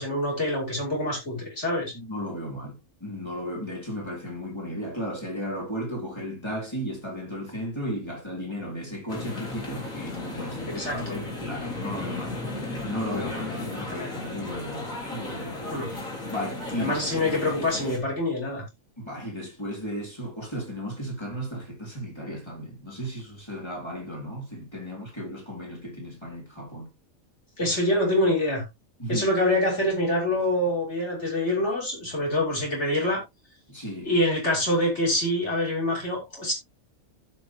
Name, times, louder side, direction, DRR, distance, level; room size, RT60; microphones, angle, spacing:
voice 1, 0.0-1.9 10.4-11.2 15.7-15.9 16.8-18.6 27.6-28.6 29.1-33.2 34.0-36.5, left 1 dB, 55° left, 5.9 m, -25 dB
voice 2, 1.9-2.8 3.0-12.4 12.8-15.6 16.3-16.9 19.0-26.9 29.0-29.3 33.7-34.1, equal, 20° left, 3.7 m, -35 dB
sound 1, 9.1-18.0, left 2 dB, 75° left, 4.1 m, -35 dB
15.0 x 6.0 x 3.0 m
omnidirectional pair, 1.4 m